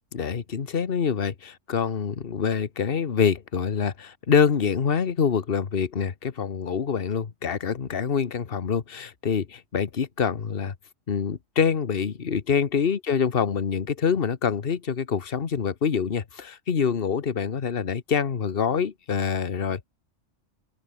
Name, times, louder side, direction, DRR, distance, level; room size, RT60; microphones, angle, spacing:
voice 1, 0.1-10.7 11.1-19.8, left 6 dB, 50° left, 1.4 m, -25 dB
open air
omnidirectional pair, 1.3 m